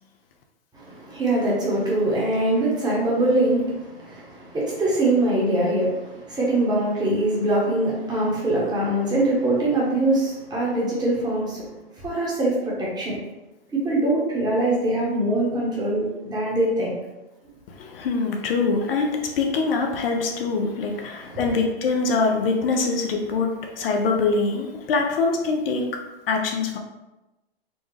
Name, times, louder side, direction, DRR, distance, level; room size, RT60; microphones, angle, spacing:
voice 1, 0.7-11.7 12.0-13.2 13.7-16.9 20.9-21.4, right 1 dB, 15° right, -5 dB, 1.1 m, -23 dB
voice 2, 17.8-25.9 26.3-26.8, left 4 dB, 60° left, 2 dB, 0.7 m, -24 dB
4.2 x 2.3 x 3.3 m, 1.0 s
hypercardioid pair, 130°, 31 cm